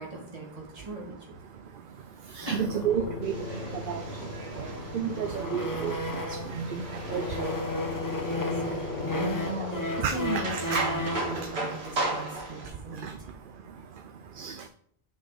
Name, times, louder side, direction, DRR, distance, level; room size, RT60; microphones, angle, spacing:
voice 1, 0.0-1.4 2.5-2.8 8.4-13.1, right 1 dB, 35° right, -2 dB, 2.1 m, -37 dB
sound 1, 2.4-6.6 7.0-11.4, left 1 dB, 20° left, 0.8 m, -34 dB
voice 2, 2.4-3.3 3.9-4.0 4.9-5.9 6.6-6.8 7.1-7.5 10.0-10.8 13.0-13.1 14.4-14.5, right 7 dB, 60° right, 8 dB, 0.7 m, -30 dB
sound 2, 2.5-11.5, left 3 dB, 55° left, 0.8 m, -39 dB
sound 3, 3.2-12.7, right 2 dB, 85° right, 1.7 m, -37 dB
6.3 x 4.2 x 5.8 m, 0.65 s
omnidirectional pair, 1.1 m